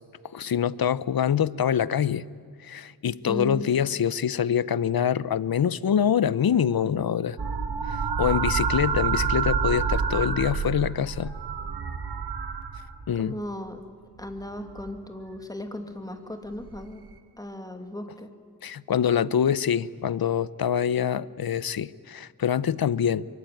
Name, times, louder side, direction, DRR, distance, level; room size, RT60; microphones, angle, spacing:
voice 1, 0.3-2.2 2.6-7.4 7.9-11.3 13.1-13.4 18.6-23.3, left 8 dB, 65° left, 19 dB, 0.7 m, -25 dB
voice 2, 3.2-3.6 13.1-13.8 14.2-17.0 17.4-18.3, equal, 10° left, 6 dB, 2.6 m, -36 dB
sound 1, 7.4-13.2 14.4-14.9 16.6-16.8, right 6 dB, 80° right, 2.3 m, -28 dB
25.0 x 24.0 x 9.3 m, 2.3 s
wide cardioid pair, 95°, 39 cm